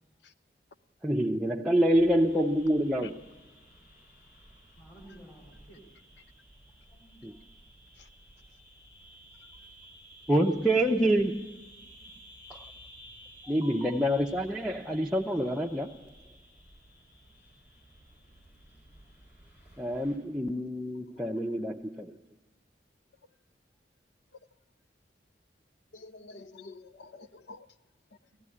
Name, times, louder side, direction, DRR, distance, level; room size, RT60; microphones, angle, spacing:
voice 1, 1.0-3.2 7.2-7.4 10.3-11.5 12.5-12.6 13.5-16.1 19.8-22.2, right 1 dB, ahead, 0.6 m, -27 dB
sound 1, 1.9-20.2, equal, 45° left, 6.1 m, -54 dB
voice 2, 4.8-5.9 6.9-7.4 13.4-13.9 17.2-17.4 26.1-26.3 28.3-28.4, right 2 dB, 25° left, 2.8 m, -53 dB
voice 3, 25.9-27.7, left 3 dB, 75° left, 0.6 m, -48 dB
18.0 x 15.0 x 9.9 m
head